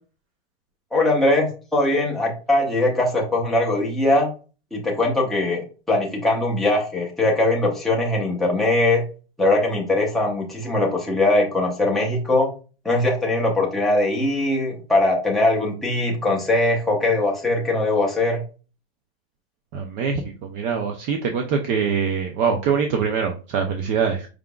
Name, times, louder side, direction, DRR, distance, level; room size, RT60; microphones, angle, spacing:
voice 1, 0.9-4.3 4.7-9.0 9.4-12.5 12.8-18.4, left 2 dB, ahead, -3 dB, 0.8 m, -21 dB
voice 2, 19.7-24.3, right 6 dB, 25° right, 4 dB, 0.4 m, -23 dB
4.9 x 3.6 x 2.3 m, 0.34 s
supercardioid pair, 150°, 30 cm